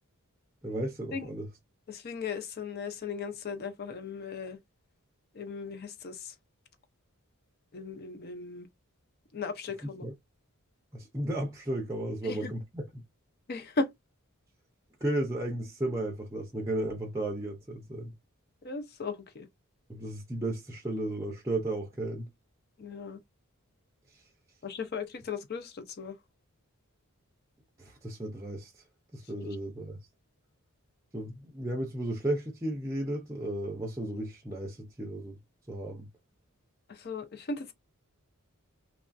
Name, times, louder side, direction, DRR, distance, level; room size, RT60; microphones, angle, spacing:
voice 1, 0.6-1.5 10.0-10.1 10.9-12.9 15.0-18.1 19.9-22.3 24.1-24.2 27.8-28.8 29.1-30.0 31.1-35.4 35.7-36.1, right 1 dB, 15° right, 0.5 m, -34 dB
voice 2, 1.9-4.6 5.3-6.3 7.7-8.7 9.3-10.1 12.2-12.5 13.5-13.9 18.6-19.5 22.8-23.2 24.6-26.2 29.4-29.6 29.8-29.9 36.9-37.7, left 4 dB, 45° left, 0.5 m, -37 dB
3.1 x 2.4 x 2.4 m
head